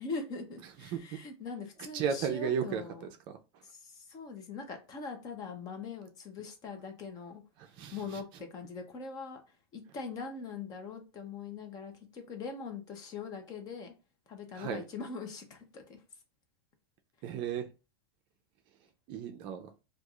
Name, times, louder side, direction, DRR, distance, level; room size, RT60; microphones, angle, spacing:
voice 1, 0.0-3.1 3.6-7.4 7.9-13.9 14.3-16.0, left 4 dB, 30° left, 6 dB, 0.8 m, -42 dB
voice 2, 1.9-2.8 7.8-8.0 14.5-14.8 17.2-17.7 19.1-19.7, right 7 dB, 40° right, 5 dB, 0.5 m, -33 dB
4.5 x 2.4 x 2.4 m, 0.30 s
supercardioid pair, 145°, 13 cm